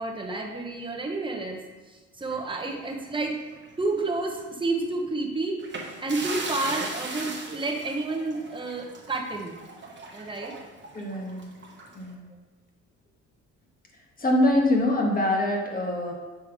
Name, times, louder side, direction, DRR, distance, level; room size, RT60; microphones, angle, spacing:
voice 1, 0.0-1.6 1.9-3.4 3.8-5.6 6.0-9.6 10.1-10.5, right 2 dB, 15° right, 0 dB, 1.1 m, -30 dB
sound 1, 2.3-3.8 4.2-4.3 5.6-12.1, right 3 dB, 40° right, 1.1 m, -38 dB
voice 2, 10.9-11.4 12.0-12.3 14.2-16.1, left 1 dB, 30° left, -1 dB, 1.5 m, -24 dB
6.9 x 3.4 x 4.8 m, 1.3 s
cardioid pair, 90°, 30 cm